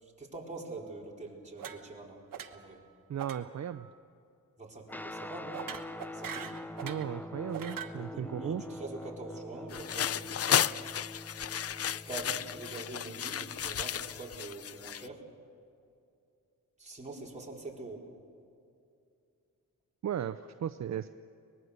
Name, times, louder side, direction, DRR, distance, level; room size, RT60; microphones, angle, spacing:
voice 1, 0.0-2.2 2.5-2.8 4.6-5.6 6.1-6.6 8.0-10.8 12.1-15.2 16.8-18.1, right 2 dB, 20° right, -3 dB, 4.6 m, -44 dB
sound 1, 1.6-2.0 2.3-2.7 3.2-3.4 3.7-4.0 5.5-7.1 7.5-8.0, right 8 dB, 80° right, 1.3 m, -42 dB
voice 2, 3.1-3.9 6.8-8.6 20.0-21.1, right 9 dB, 55° right, 11 dB, 0.6 m, -36 dB
Guitar, 4.9-14.5, left 1 dB, 5° left, 0.6 m, -45 dB
sound 2, 9.7-15.1, left 9 dB, 45° left, 0.5 m, -33 dB
24.0 x 20.5 x 6.7 m, 2.5 s
cardioid pair, 85°, 33 cm